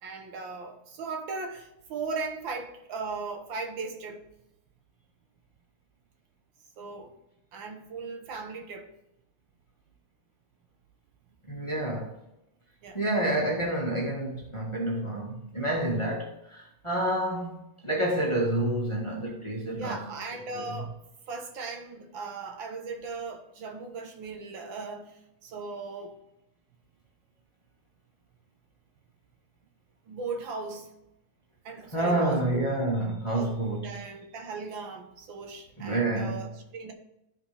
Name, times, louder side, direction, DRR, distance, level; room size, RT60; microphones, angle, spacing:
voice 1, 0.0-4.2 6.8-7.1 7.5-8.9 12.8-13.0 19.8-21.0 21.3-26.2 30.1-30.9 31.6-32.7 33.2-36.9, right 4 dB, 70° right, 1.8 m, -38 dB
voice 2, 11.4-12.1 12.9-20.0 20.5-20.7 31.9-34.0 35.8-36.5, right 1 dB, 15° left, 1.5 m, -29 dB
14.0 x 5.0 x 3.4 m
omnidirectional pair, 2.3 m